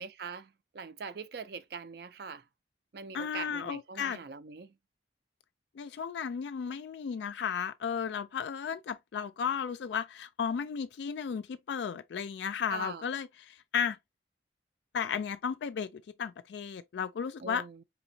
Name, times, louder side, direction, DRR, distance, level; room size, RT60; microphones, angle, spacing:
voice 1, 0.0-2.4 2.9-4.7 12.7-13.0 17.4-17.8, right 5 dB, 55° right, 0.4 m, -42 dB
voice 2, 3.1-4.2 5.8-14.0 14.9-17.7, left 7 dB, 70° left, 0.3 m, -34 dB
4.3 x 2.9 x 2.6 m
head